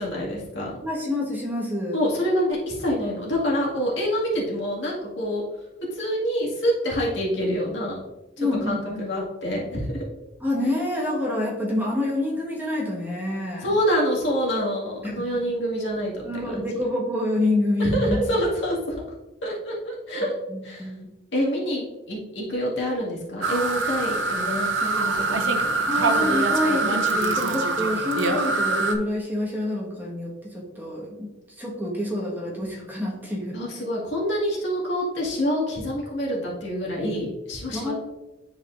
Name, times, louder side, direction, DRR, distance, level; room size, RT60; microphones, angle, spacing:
voice 1, 0.0-0.8 1.9-5.4 5.9-8.0 8.4-10.1 13.6-16.7 17.8-19.0 19.4-20.3 20.6-20.9 21.3-25.8 33.5-38.0, equal, 70° left, -4 dB, 2.0 m, -26 dB
voice 2, 0.8-2.0 8.4-9.0 10.4-13.6 15.0-15.1 16.2-18.2 20.5-21.1 25.9-33.6 37.7-38.0, left 1 dB, 10° right, -4 dB, 1.4 m, -27 dB
sound 1, 23.4-29.0, right 3 dB, 85° right, 0.7 m, -24 dB
10.0 x 4.2 x 2.5 m, 1.0 s
head